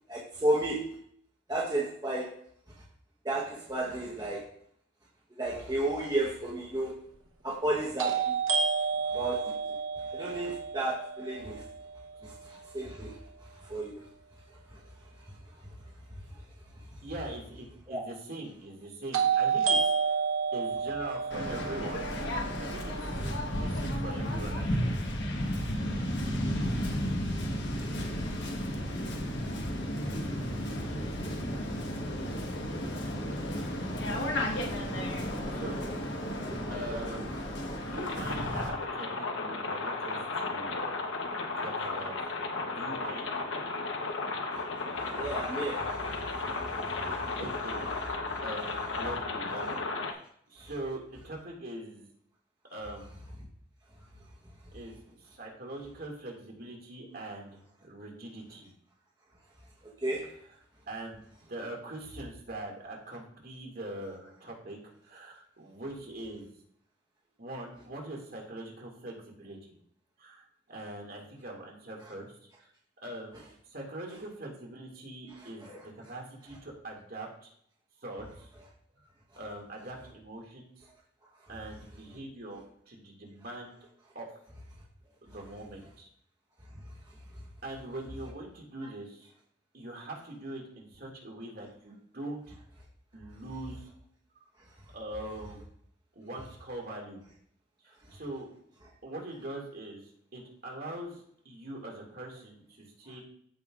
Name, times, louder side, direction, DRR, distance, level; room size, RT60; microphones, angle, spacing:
voice 1, 0.1-1.0 1.5-2.4 3.2-4.5 5.4-7.1 7.4-8.4 9.1-9.8 10.1-11.6 12.2-13.2 13.6-14.0 14.7-14.8 17.9-18.0 28.0-28.1 28.8-28.9 30.0-30.3 30.8-30.9 37.0-37.1 44.5-44.6 44.9-47.4 48.3-48.4 50.6-50.7 60.0-60.3 75.6-75.8, right 1 dB, 20° right, -4 dB, 1.1 m, -33 dB
sound 1, 6.0-6.1 8.0-11.9 19.1-23.2, right 6 dB, 85° right, 1.0 m, -30 dB
voice 2, 17.0-20.2 20.5-22.1 22.6-23.1 23.5-24.8 35.5-35.9 36.7-37.5 37.8-40.9 41.5-42.3 42.7-43.3 47.4-49.8 50.5-52.1 52.7-53.2 54.7-58.7 60.9-61.2 61.5-66.5 67.4-69.8 70.2-72.7 73.0-73.4 73.7-77.5 78.0-78.5 79.4-80.8 81.5-83.7 84.1-84.3 85.2-86.1 87.6-89.3 89.7-92.5 93.1-93.9 94.9-95.6 96.2-97.2 97.8-98.5 99.0-103.2, right 1 dB, 50° right, -1 dB, 2.2 m, -42 dB
Waves surf, 21.3-38.7, equal, 60° left, 1.3 m, -33 dB
sound 2, 37.9-50.1, left 3 dB, 80° left, 1.0 m, -34 dB
14.0 x 5.5 x 2.5 m, 0.65 s
head